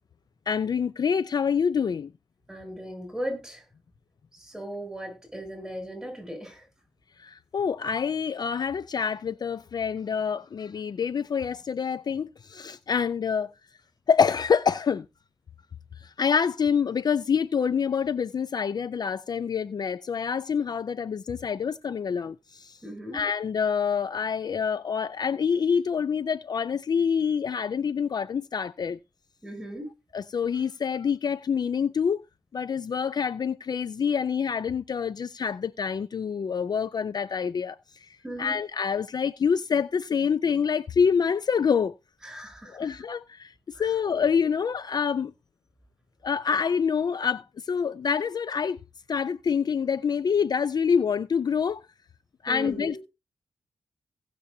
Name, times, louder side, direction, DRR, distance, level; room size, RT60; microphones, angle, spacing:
voice 1, 0.5-2.1 7.2-13.5 14.1-15.1 16.0-22.8 23.1-29.0 30.1-32.2 32.5-37.8 38.4-41.9 42.7-45.3 46.2-48.8 49.1-51.8 52.4-53.0, left 6 dB, 45° left, 0.4 m, -26 dB
voice 2, 2.5-3.6 4.3-6.6 22.8-23.2 29.4-29.9 38.2-38.6 42.2-42.8 43.7-43.9 52.5-53.0, equal, 5° right, 7.0 m, -37 dB
18.5 x 6.8 x 2.7 m
cardioid pair, 75°, 9 cm